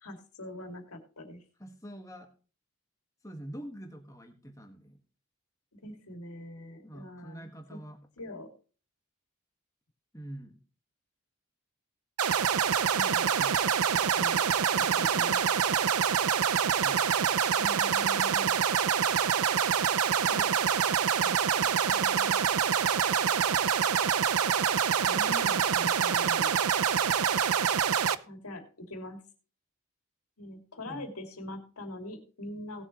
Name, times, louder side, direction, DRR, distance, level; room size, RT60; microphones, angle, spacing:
voice 1, 0.0-1.4 5.7-7.8 8.2-8.5 12.9-13.3 13.9-14.4 14.8-15.6 17.6-18.6 20.3-20.5 21.2-22.4 25.0-26.6 28.2-29.2 30.4-32.8, left 1 dB, 85° left, 4 dB, 2.6 m, -43 dB
voice 2, 1.6-2.3 3.2-5.0 6.8-8.0 10.1-10.6 13.4-13.7 14.8-15.6 16.8-17.0 30.9-31.0, right 1 dB, 15° left, 4 dB, 1.7 m, -45 dB
sound 1, 12.2-28.2, right 8 dB, 80° right, 0.6 m, -26 dB
18.5 x 7.3 x 3.1 m, 0.38 s
head